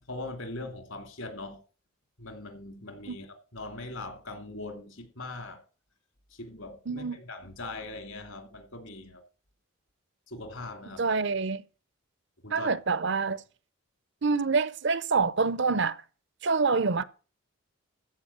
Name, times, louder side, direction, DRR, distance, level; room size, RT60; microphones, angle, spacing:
voice 1, 0.0-1.6 2.2-5.6 6.3-9.2 10.3-11.0 12.4-12.7, left 2 dB, 70° left, 2.7 m, -41 dB
voice 2, 6.9-7.2 11.0-11.6 12.5-13.4 14.2-16.0 16.4-17.0, right 4 dB, 55° right, 0.6 m, -26 dB
14.0 x 5.0 x 8.6 m
head